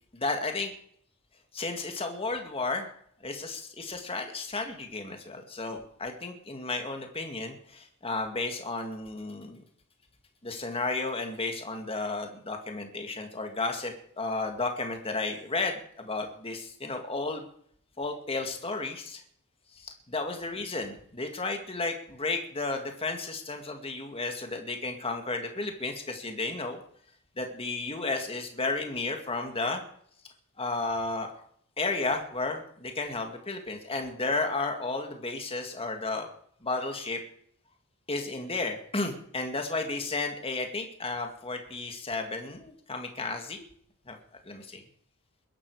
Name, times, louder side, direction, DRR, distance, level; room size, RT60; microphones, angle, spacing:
voice 1, 0.1-0.7 1.5-2.9 3.2-9.6 10.4-17.4 18.0-19.2 19.8-26.8 27.4-29.8 30.6-31.3 31.8-36.3 36.6-37.2 38.1-43.6 44.1-44.2 44.4-44.8, left 3 dB, 25° left, 4 dB, 2.1 m, -33 dB
21.0 x 11.5 x 4.9 m, 0.63 s
head